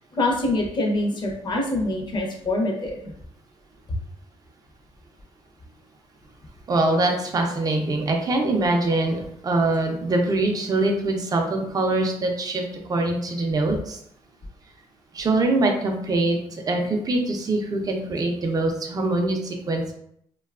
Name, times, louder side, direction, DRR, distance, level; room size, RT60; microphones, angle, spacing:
voice 1, 0.1-3.1, left 2 dB, 40° left, 0 dB, 0.7 m, -25 dB
voice 2, 6.7-12.6 12.9-14.0 15.1-19.9, right 2 dB, 30° right, 2 dB, 0.5 m, -23 dB
2.7 x 2.3 x 2.3 m, 0.70 s
cardioid pair, 85°, 12 cm